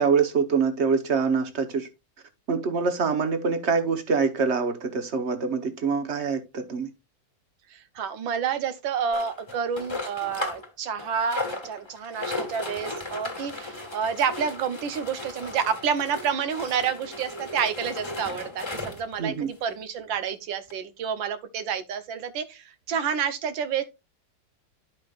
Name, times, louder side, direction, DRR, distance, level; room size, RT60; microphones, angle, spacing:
voice 1, 0.0-1.9 2.5-6.9 19.2-19.5, right 5 dB, 45° right, 1.0 m, -25 dB
voice 2, 7.7-23.8, right 7 dB, 75° right, 1.6 m, -29 dB
sound 1, 9.1-10.7 11.0-19.1 19.8-19.9 20.1-20.2 20.7-20.8, left 2 dB, 15° left, 1.3 m, -36 dB
12.5 x 5.1 x 2.4 m
omnidirectional pair, 2.1 m